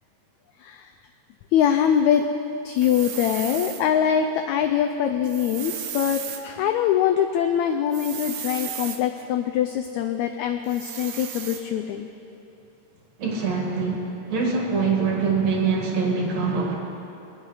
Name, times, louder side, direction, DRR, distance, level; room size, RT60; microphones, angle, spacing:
voice 1, 1.5-2.3 2.6-12.1, left 9 dB, 85° left, 6 dB, 1.6 m, -23 dB
sound 1, 2.8-3.8 5.2-6.4 7.9-9.0 10.7-11.6, right 9 dB, 85° right, 2.6 m, -34 dB
voice 2, 13.2-16.7, right 4 dB, 55° right, -1 dB, 2.8 m, -24 dB
21.5 x 8.8 x 4.9 m, 2.8 s
omnidirectional pair, 3.9 m